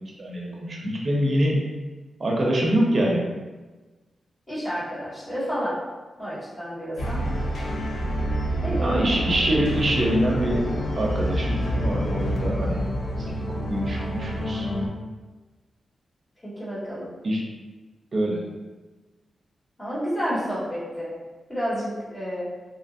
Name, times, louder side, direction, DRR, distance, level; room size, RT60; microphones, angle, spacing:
voice 1, 0.2-1.6 2.2-3.2 8.8-10.7 11.0-12.9 13.4-14.7 17.2-17.4 18.1-18.4, equal, 50° right, -2 dB, 0.6 m, -24 dB
voice 2, 4.5-5.8 6.2-7.2 8.6-8.9 16.4-17.1 19.8-21.1 21.5-22.5, equal, 30° left, -9 dB, 1.2 m, -30 dB
sound 1, 7.0-14.9, equal, 80° left, 0.5 m, -27 dB
2.8 x 2.3 x 2.6 m, 1.3 s
cardioid pair, 80°, 0 cm